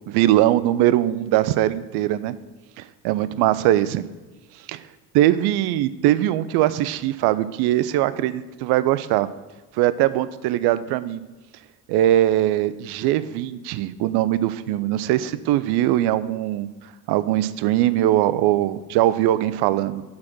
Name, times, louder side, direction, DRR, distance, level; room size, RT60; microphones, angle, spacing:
voice 1, 0.1-2.4 2.8-4.0 4.7-4.8 5.1-9.3 9.7-11.2 11.9-16.7 17.1-20.0, right 13 dB, 55° right, 15 dB, 0.5 m, -21 dB
6.3 x 4.2 x 6.1 m, 1.2 s
hypercardioid pair, 60°, 49 cm